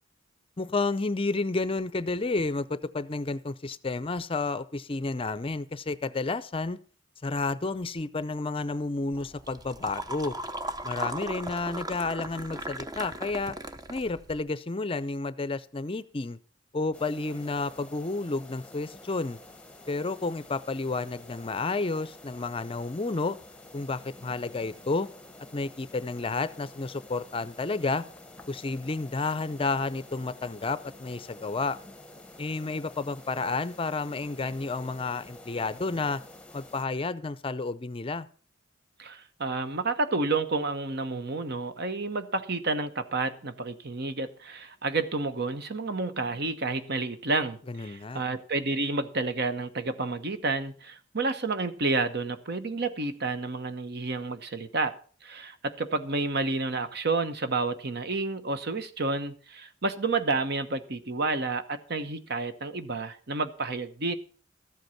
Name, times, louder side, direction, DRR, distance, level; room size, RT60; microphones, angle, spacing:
voice 1, 0.6-6.8 7.2-10.3 10.8-13.6 13.9-16.4 16.7-19.4 19.9-23.4 23.7-25.1 25.5-28.1 28.5-31.8 32.4-36.2 36.5-38.3 47.7-48.2, left 3 dB, 30° left, 0.5 m, -31 dB
sound 1, 9.1-14.4, right 2 dB, 20° right, 0.7 m, -37 dB
sound 2, 16.9-36.8, left 1 dB, 5° left, 1.0 m, -49 dB
voice 2, 39.0-64.1, right 3 dB, 55° right, 1.1 m, -30 dB
13.5 x 8.1 x 5.8 m
head